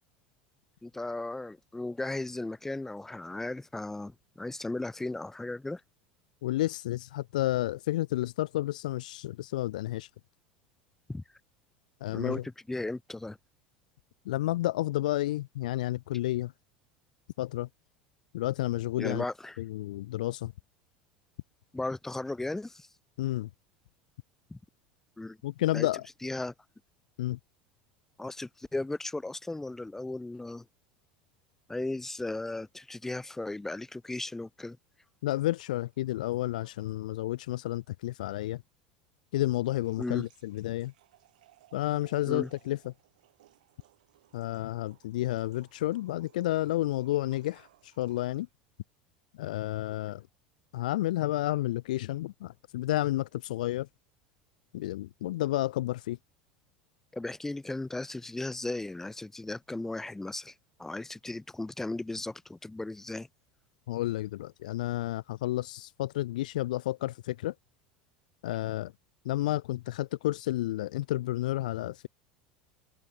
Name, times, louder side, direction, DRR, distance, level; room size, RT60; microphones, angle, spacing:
voice 1, 0.8-5.8 11.1-11.2 12.1-13.4 19.0-19.6 21.7-22.9 24.5-24.6 25.2-25.4 25.7-25.9 26.2-26.5 28.2-30.6 31.7-34.8 40.0-40.3 42.3-42.5 57.1-63.3, left 2 dB, 10° left, 1.0 m, -36 dB
voice 2, 6.4-10.1 12.0-12.4 14.3-16.5 17.4-17.7 18.3-19.2 19.6-20.5 23.2-23.5 25.4-26.1 27.2-27.4 35.2-38.6 39.3-40.9 41.7-42.9 44.3-48.5 49.3-50.3 50.7-53.9 54.7-56.2 63.9-67.5 68.4-68.9 69.2-72.1, left 15 dB, 65° left, 0.3 m, -31 dB
sound 1, 35.3-37.2 37.5-37.6 39.3-48.5, right 15 dB, 65° right, 4.1 m, -63 dB
figure-of-eight pair, 75°, 5 cm